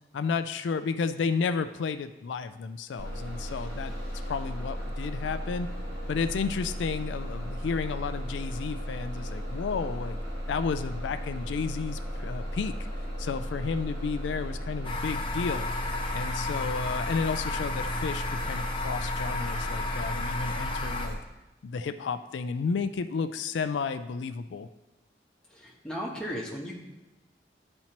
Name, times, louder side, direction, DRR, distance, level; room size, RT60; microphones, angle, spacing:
voice 1, 0.1-3.9 4.3-5.7 6.1-10.2 10.5-12.8 13.2-15.7 16.1-21.2 21.6-24.7, left 5 dB, 85° left, 10 dB, 0.3 m, -32 dB
Bus, 3.0-21.1, equal, 65° right, 2.4 m, -35 dB
sound 1, 14.8-21.1, left 2 dB, 30° left, 0.8 m, -33 dB
voice 2, 25.5-26.7, equal, 5° left, -4 dB, 1.2 m, -36 dB
12.0 x 4.3 x 2.9 m, 1.0 s
head